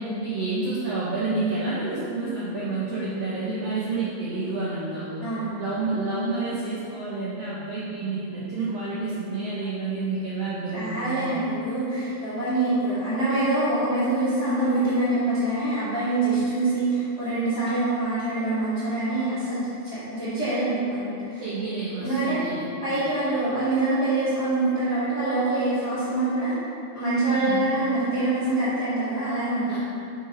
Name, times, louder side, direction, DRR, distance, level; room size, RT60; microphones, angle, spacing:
voice 1, 0.0-5.3 5.6-11.3 21.4-22.7 27.3-27.7 29.6-29.8, right 3 dB, 80° right, -8 dB, 1.4 m, -29 dB
voice 2, 5.2-5.6 10.7-21.4 22.0-22.4 22.8-26.5 26.9-29.8, right 2 dB, 60° left, -13 dB, 1.0 m, -25 dB
5.1 x 3.8 x 5.3 m, 2.6 s
omnidirectional pair, 3.9 m